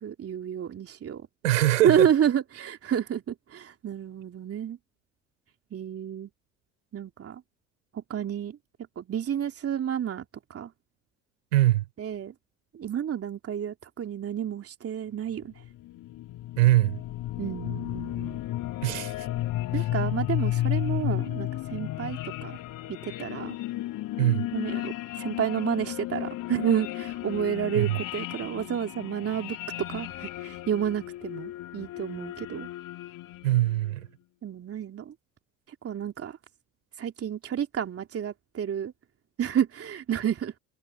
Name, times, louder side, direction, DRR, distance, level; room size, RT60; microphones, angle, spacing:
voice 1, 0.0-1.3 1.8-4.8 5.7-6.3 6.9-7.4 7.9-8.6 9.0-10.2 10.5-10.7 12.0-12.3 12.7-15.5 17.4-18.4 19.7-22.5 22.9-23.6 24.5-29.6 29.9-32.7 34.4-35.1 35.8-36.4 37.0-38.9 39.4-40.5, right 9 dB, 35° right, 3.1 m, -30 dB
voice 2, 1.4-2.1 11.5-11.9 16.6-17.0 18.8-19.3 19.7-19.8 24.2-24.5 27.7-28.0 33.4-34.1, right 15 dB, 75° right, 5.4 m, -22 dB
sound 1, 15.4-33.8, left 14 dB, 50° left, 4.0 m, -33 dB
figure-of-eight pair, 65°, 40 cm